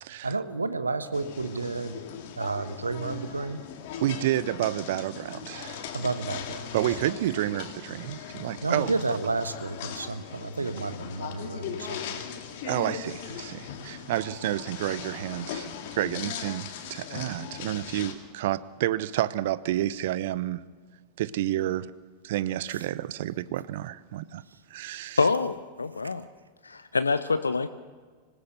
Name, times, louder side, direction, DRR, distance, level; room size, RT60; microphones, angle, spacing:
voice 1, 0.2-2.0 2.4-3.6 5.9-7.1 8.6-12.2 22.7-22.8, right 3 dB, 80° right, 12 dB, 1.3 m, -31 dB
sound 1, 1.1-18.1, left 8 dB, 50° left, 2.4 m, -39 dB
voice 2, 4.0-5.9 6.7-8.9 12.6-20.6 21.2-21.9 22.2-24.4 24.7-25.2, right 13 dB, 55° right, 18 dB, 0.6 m, -30 dB
voice 3, 25.2-26.2 26.6-27.7, left 4 dB, 75° left, 13 dB, 0.6 m, -26 dB
25.5 x 16.5 x 6.8 m, 1.5 s
figure-of-eight pair, 90°, 0 cm